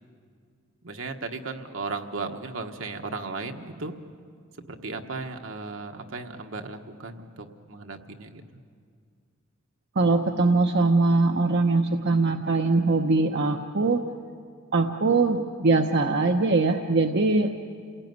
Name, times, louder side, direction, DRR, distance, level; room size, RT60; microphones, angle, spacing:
voice 1, 0.8-3.9 4.6-8.4, right 3 dB, 75° right, 4 dB, 1.4 m, -36 dB
voice 2, 10.0-14.0 14.7-17.5, right 3 dB, 55° right, 3 dB, 0.9 m, -22 dB
28.0 x 17.5 x 9.5 m, 2.2 s
head